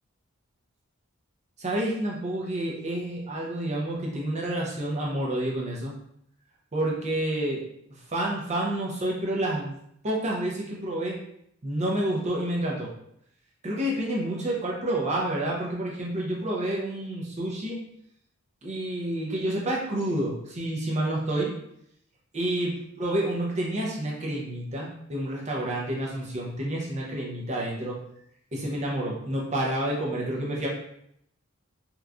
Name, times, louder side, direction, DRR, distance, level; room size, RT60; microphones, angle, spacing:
voice 1, 1.6-5.9 6.7-7.6 8.1-9.8 10.0-11.2 11.6-12.9 13.6-17.8 18.6-21.5 22.3-22.7 23.0-28.0 28.5-30.7, right 1 dB, 35° right, -3 dB, 0.6 m, -29 dB
3.4 x 3.0 x 2.4 m, 0.73 s
head